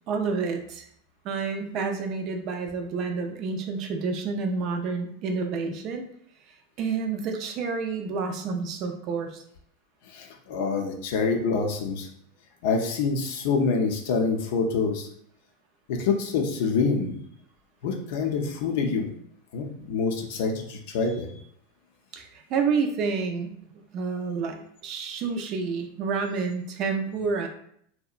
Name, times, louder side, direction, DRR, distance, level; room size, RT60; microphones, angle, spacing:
voice 1, 0.1-0.9 1.2-6.1 6.8-9.4 22.1-27.5, right 4 dB, 45° right, 5 dB, 0.4 m, -29 dB
voice 2, 10.1-12.1 12.6-15.1 15.9-17.2 17.8-19.1 19.5-21.3, left 4 dB, 70° left, 3 dB, 0.5 m, -26 dB
2.7 x 2.1 x 2.4 m, 0.67 s
supercardioid pair, 120°, 0 cm